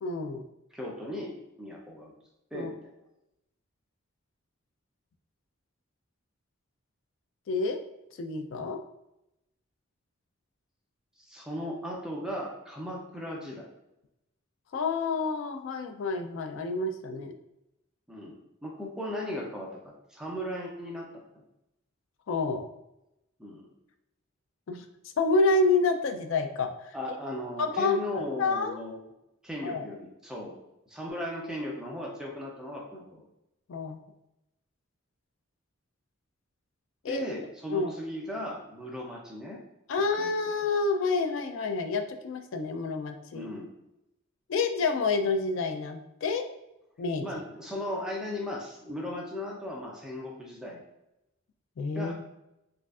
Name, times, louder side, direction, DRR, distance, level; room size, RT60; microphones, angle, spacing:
voice 1, 0.0-0.4 2.5-2.7 7.5-7.8 8.2-8.8 14.7-17.3 22.3-22.6 24.7-24.8 25.2-26.9 27.6-28.8 29.6-29.9 33.7-34.0 37.0-37.2 37.7-37.9 39.9-43.5 44.5-46.4 47.0-47.3 51.8-52.1, left 3 dB, 65° left, 6 dB, 0.4 m, -28 dB
voice 2, 0.7-2.1 2.5-2.8 11.3-13.7 18.1-21.1 23.4-23.7 26.9-29.0 29.4-30.5 30.9-33.2 37.1-39.6 40.2-40.3 43.3-43.7 47.2-50.8 51.9-52.1, left 1 dB, 5° right, -2 dB, 0.5 m, -37 dB
4.7 x 2.4 x 2.4 m, 0.88 s
head